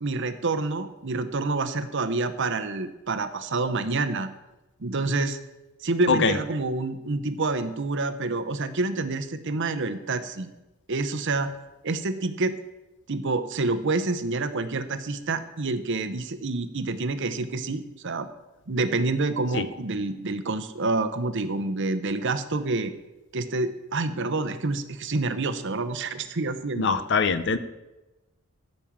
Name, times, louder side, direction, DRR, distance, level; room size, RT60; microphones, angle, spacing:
voice 1, 0.0-4.3 4.8-5.4 5.8-10.5 10.9-11.5 11.8-12.5 13.1-18.3 18.7-22.9 23.3-27.0, right 3 dB, 55° right, 11 dB, 0.8 m, -28 dB
voice 2, 26.8-27.6, left 4 dB, 55° left, 12 dB, 0.7 m, -23 dB
15.0 x 5.4 x 7.3 m, 1.0 s
head